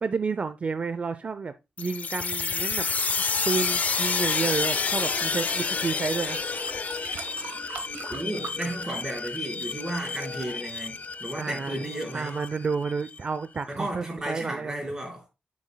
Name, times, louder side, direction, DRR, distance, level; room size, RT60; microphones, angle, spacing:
voice 1, 0.0-2.9 3.5-6.4 11.4-11.8 12.1-14.8, right 4 dB, 45° right, 0.5 m, -30 dB
sound 1, 1.8-13.2, left 5 dB, 50° left, 0.5 m, -30 dB
sound 2, 6.0-9.5 9.8-10.3 11.0-11.1, right 6 dB, 90° right, 1.0 m, -42 dB
voice 2, 8.1-12.4 13.7-15.3, right 1 dB, 20° right, 4.2 m, -34 dB
9.4 x 7.3 x 2.2 m
cardioid pair, 95°, 3 cm